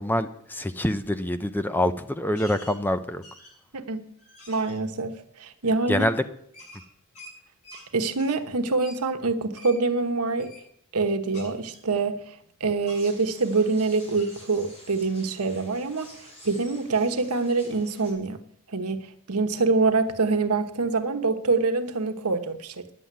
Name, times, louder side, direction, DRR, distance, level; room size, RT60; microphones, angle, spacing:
voice 1, 0.0-3.2 5.9-6.2, left 1 dB, 10° left, 0.5 m, -25 dB
sound 1, 2.4-2.8 3.2-3.7 4.2-4.8 6.5-7.9 8.2-8.4 8.8-9.0 9.6-9.8 10.4-10.6 11.3-12.5 12.8-13.0 13.5-13.8 14.1-14.3, left 1 dB, 90° left, 5.7 m, -47 dB
voice 2, 3.7-4.1 4.5-6.1 7.9-10.5 10.9-18.4 18.7-22.9, right 3 dB, 80° right, 1.1 m, -25 dB
sound 2, 12.9-18.1, equal, 30° left, 4.2 m, -50 dB
10.0 x 7.6 x 9.4 m
head